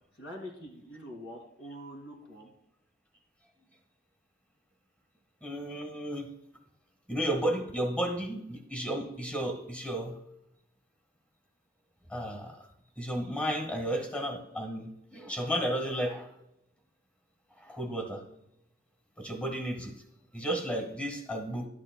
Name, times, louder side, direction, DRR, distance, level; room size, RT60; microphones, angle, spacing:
voice 1, 0.2-2.5, equal, 70° left, 1 dB, 2.4 m, -44 dB
voice 2, 5.4-6.3 7.1-10.2 12.1-12.6 13.0-16.3 17.6-18.2 19.2-19.9 20.3-21.7, right 1 dB, 5° left, 3 dB, 1.5 m, -33 dB
12.0 x 10.0 x 2.2 m, 0.80 s
head